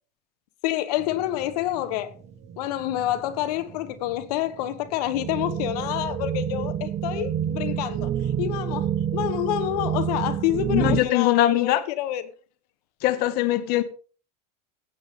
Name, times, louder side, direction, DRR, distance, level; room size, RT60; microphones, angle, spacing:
voice 1, 0.6-2.1 2.6-8.1 8.4-12.3, left 13 dB, 75° left, 1.2 m, -28 dB
sound 1, 1.0-11.0, right 9 dB, 35° right, 1.3 m, -29 dB
voice 2, 10.7-11.8 13.0-13.8, left 14 dB, 50° left, 1.1 m, -21 dB
16.0 x 8.0 x 3.7 m
supercardioid pair, 125°, 20 cm